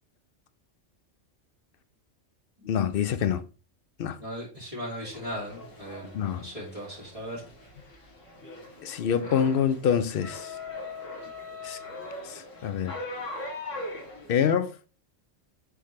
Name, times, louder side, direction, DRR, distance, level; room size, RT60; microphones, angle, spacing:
voice 1, 2.6-3.4 4.0-4.2 6.1-6.4 8.8-10.5 11.6-11.8 12.3-13.0 14.3-14.8, left 8 dB, 60° left, 0.6 m, -26 dB
voice 2, 4.2-7.4 9.2-9.4, equal, 30° right, 2.4 m, -38 dB
sound 1, 5.0-14.3, left 2 dB, 85° left, 2.2 m, -41 dB
7.9 x 3.8 x 3.2 m
omnidirectional pair, 1.3 m